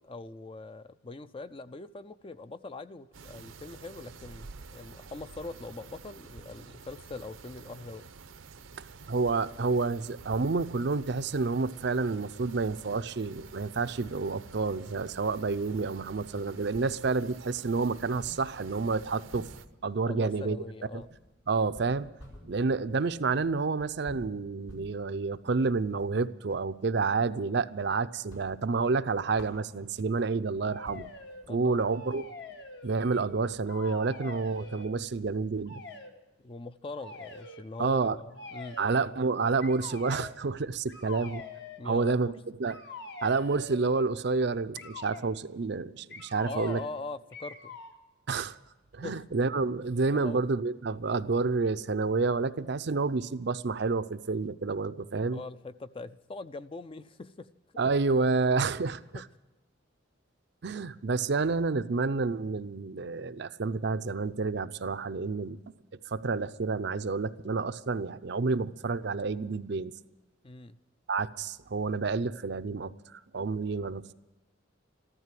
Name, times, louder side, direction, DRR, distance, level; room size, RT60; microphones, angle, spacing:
voice 1, 0.0-8.0 20.1-21.1 31.5-32.0 36.4-38.8 41.8-42.4 46.4-47.8 49.0-49.2 50.1-50.4 55.3-57.5 57.7-57.8 59.1-59.2 70.4-70.8, left 3 dB, 25° left, 13 dB, 0.4 m, -42 dB
sound 1, 3.1-19.7, right 4 dB, 85° right, 0.8 m, -49 dB
voice 2, 8.8-19.5 19.8-20.6 20.9-21.0 21.5-22.1 22.4-31.1 31.5-32.3 32.8-35.8 37.8-38.2 38.8-41.4 41.8-42.3 42.6-42.8 43.2-46.8 48.3-48.5 48.9-55.4 57.8-59.2 60.6-65.6 66.1-69.9 71.1-74.1, right 4 dB, 60° right, 12 dB, 0.5 m, -29 dB
sound 2, 18.1-26.7 27.1-27.9 28.1-30.2 30.6-30.7 30.9-35.0, equal, 80° left, 4.8 m, -52 dB
sound 3, 30.6-31.5 31.9-33.4 33.6-34.9 35.7-36.1 37.0-37.6 38.3-39.1 39.6-40.4 40.9-41.8 42.7-43.9 44.7-45.3 46.1-47.0 47.3-48.0, left 3 dB, 60° left, 1.5 m, -45 dB
14.5 x 12.5 x 7.5 m, 1.1 s
head